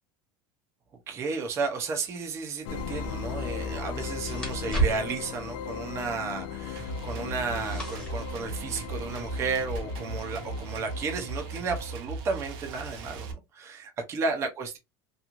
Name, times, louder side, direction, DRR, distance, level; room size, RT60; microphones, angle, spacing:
voice 1, 1.1-14.8, right 4 dB, 25° right, 0.6 m, -33 dB
sound 1, 2.6-11.9, left 7 dB, 75° left, 0.5 m, -38 dB
sound 2, 2.7-9.8, right 4 dB, 5° left, 1.0 m, -36 dB
sound 3, 6.8-13.3, right 3 dB, 55° right, 0.8 m, -38 dB
3.0 x 2.4 x 2.4 m
supercardioid pair, 165°, 12 cm